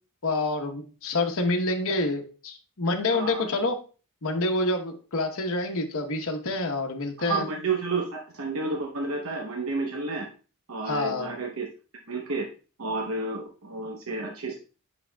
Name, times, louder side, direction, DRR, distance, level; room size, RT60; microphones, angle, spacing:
voice 1, 0.2-3.8 4.2-7.4 10.9-11.3, left 2 dB, 65° left, 3 dB, 0.9 m, -27 dB
voice 2, 3.1-3.5 7.2-10.3 10.7-11.7 12.1-12.5 12.8-14.6, right 3 dB, 65° right, 1 dB, 0.9 m, -31 dB
8.5 x 6.2 x 2.2 m, 0.36 s
head